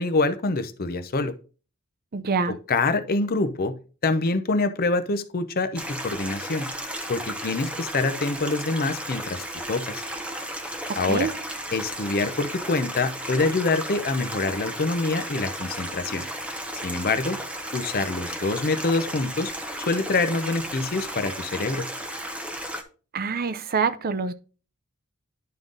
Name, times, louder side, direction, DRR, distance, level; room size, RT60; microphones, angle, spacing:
voice 1, 0.0-1.3 2.5-3.7 4.0-6.7 7.1-10.0 11.0-11.3 11.7-16.2 16.8-17.4 17.7-19.5 19.9-21.8, left 3 dB, 45° left, 0.7 m, -25 dB
voice 2, 2.1-2.6 10.9-11.3 23.1-24.3, right 5 dB, 45° right, 0.5 m, -26 dB
Stream, 5.7-22.8, equal, 5° right, 0.8 m, -34 dB
10.5 x 3.7 x 3.9 m
head